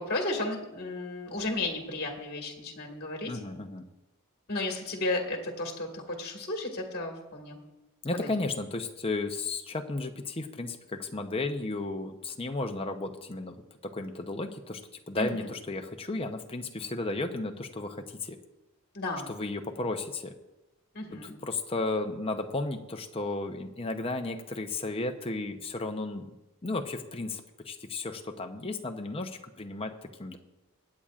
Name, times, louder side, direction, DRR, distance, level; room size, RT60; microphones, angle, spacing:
voice 1, 0.0-3.3 4.5-7.6 8.1-8.3 15.2-15.5 18.9-19.3 20.9-21.3, left 2 dB, 45° left, 2 dB, 1.9 m, -33 dB
voice 2, 3.3-3.9 8.0-14.8 15.1-18.4 19.3-20.3 21.1-26.4 26.6-30.4, left 2 dB, 25° left, 5 dB, 0.8 m, -34 dB
24.0 x 8.7 x 2.5 m, 1.0 s
head